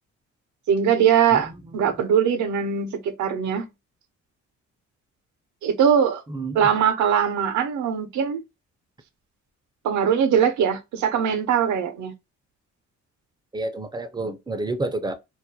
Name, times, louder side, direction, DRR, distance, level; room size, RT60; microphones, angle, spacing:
voice 1, 0.7-3.7 5.6-6.2 6.5-8.4 9.8-12.1, right 8 dB, 75° right, 0.6 m, -21 dB
voice 2, 1.3-1.9 6.3-6.7 13.5-15.1, right 2 dB, 15° right, 0.4 m, -30 dB
2.3 x 2.1 x 2.8 m
cardioid pair, 90°, 30 cm